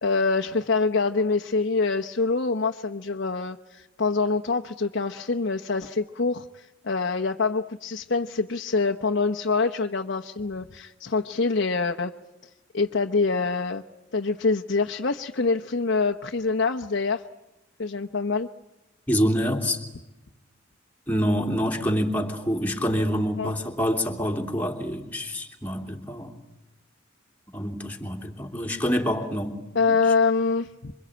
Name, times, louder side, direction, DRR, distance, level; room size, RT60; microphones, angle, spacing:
voice 1, 0.0-12.1 12.7-13.8 14.1-17.2 17.8-18.5 23.4-23.5 29.7-30.9, left 4 dB, 60° left, 3 dB, 1.0 m, -25 dB
voice 2, 19.1-19.8 21.1-26.3 27.5-29.6, equal, 10° left, 1 dB, 3.1 m, -26 dB
27.0 x 24.5 x 8.8 m, 1.0 s
head